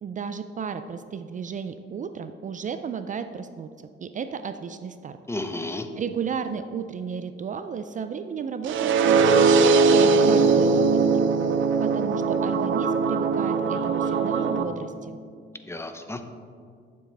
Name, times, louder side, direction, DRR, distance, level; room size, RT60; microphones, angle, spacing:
voice 1, 0.0-3.7 4.0-5.2 6.0-9.5 9.8-11.2 11.8-15.2, right 6 dB, 40° right, 10 dB, 0.4 m, -33 dB
voice 2, 5.3-5.9 15.7-16.3, left 2 dB, 15° left, 7 dB, 0.7 m, -32 dB
sound 1, 8.6-14.6, right 4 dB, 75° right, 0.7 m, -20 dB
12.0 x 7.2 x 3.4 m, 2.2 s
cardioid pair, 90°, 20 cm